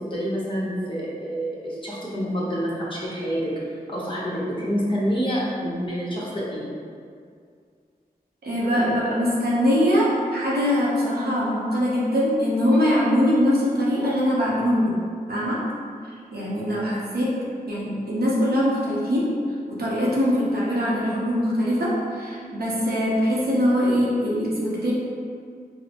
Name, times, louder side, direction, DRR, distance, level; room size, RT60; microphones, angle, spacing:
voice 1, 0.1-3.5 3.9-6.6, equal, 30° left, -7 dB, 1.0 m, -27 dB
voice 2, 8.4-15.0 15.3-15.6 16.3-17.3 17.7-19.3 19.7-24.9, equal, 80° right, -6 dB, 0.8 m, -22 dB
4.2 x 2.1 x 2.9 m, 2.2 s
wide cardioid pair, 70°, 16 cm